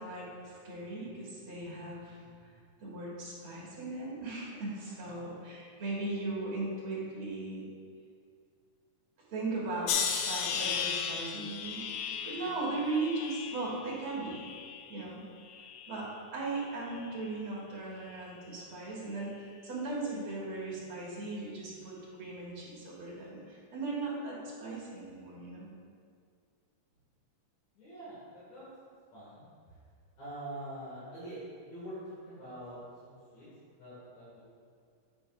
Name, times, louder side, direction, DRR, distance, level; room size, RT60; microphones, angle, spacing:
voice 1, 0.0-2.2 2.8-7.6 9.3-14.4 14.9-15.2 15.9-25.7, right 2 dB, 45° right, -5 dB, 2.4 m, -38 dB
sound 1, 9.9-15.0 15.5-16.2 16.9-17.2, left 7 dB, 90° left, 1.5 m, -36 dB
voice 2, 27.7-29.4 30.1-33.4 33.8-34.4, right 1 dB, 65° left, -10 dB, 3.3 m, -45 dB
9.0 x 8.8 x 2.5 m, 2.2 s
omnidirectional pair, 3.6 m